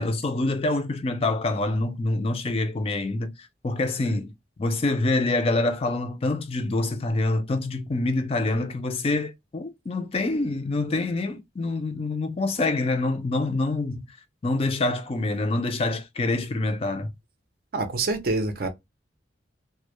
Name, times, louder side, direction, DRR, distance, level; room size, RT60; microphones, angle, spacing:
voice 1, 0.0-4.3 4.6-14.1 14.4-17.1, left 2 dB, 30° left, 0.3 m, -26 dB
voice 2, 17.7-18.7, right 3 dB, 55° right, 0.5 m, -26 dB
2.1 x 2.0 x 2.9 m
head